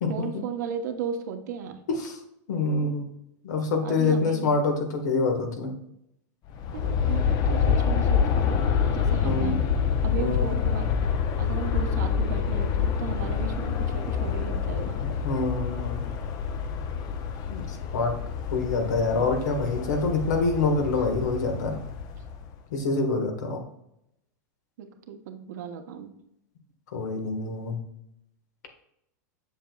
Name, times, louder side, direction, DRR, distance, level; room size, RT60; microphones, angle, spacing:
voice 1, 0.1-1.8 3.8-4.8 6.7-8.6 8.9-9.6 10.0-11.1 11.4-15.0 24.8-26.1, right 6 dB, 75° right, 5 dB, 1.1 m, -35 dB
voice 2, 1.9-2.2 2.5-3.1 3.4-5.7 9.2-9.6 10.2-10.5 15.2-16.1 17.5-18.2 18.5-21.8 22.7-23.6 26.9-27.8, left 3 dB, 80° left, 3 dB, 1.7 m, -26 dB
Aircraft, 6.5-22.5, left 6 dB, 45° left, 0.8 m, -27 dB
7.5 x 6.4 x 2.4 m, 0.79 s
hypercardioid pair, 120°, 9 cm